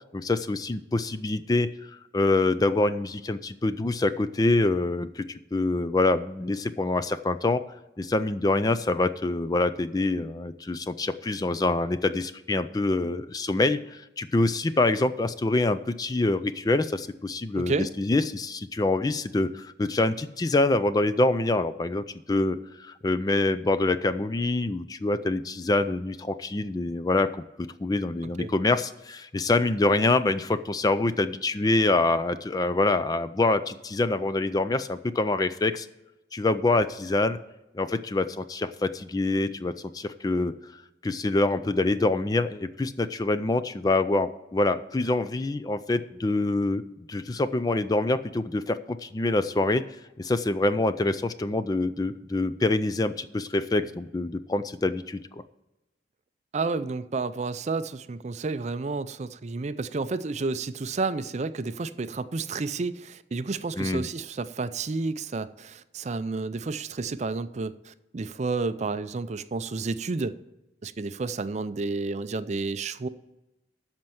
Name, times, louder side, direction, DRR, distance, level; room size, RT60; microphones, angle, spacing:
voice 1, 0.1-7.6 8.0-17.7 18.0-27.3 27.6-35.9 36.3-37.4 37.7-40.5 41.0-46.8 47.1-49.8 50.2-55.4 63.8-64.0, left 2 dB, 20° left, 12 dB, 0.4 m, -25 dB
voice 2, 17.6-17.9 28.4-28.5 56.5-70.4 70.8-73.1, right 3 dB, 40° right, 13 dB, 0.4 m, -31 dB
13.0 x 4.4 x 7.7 m, 0.95 s
head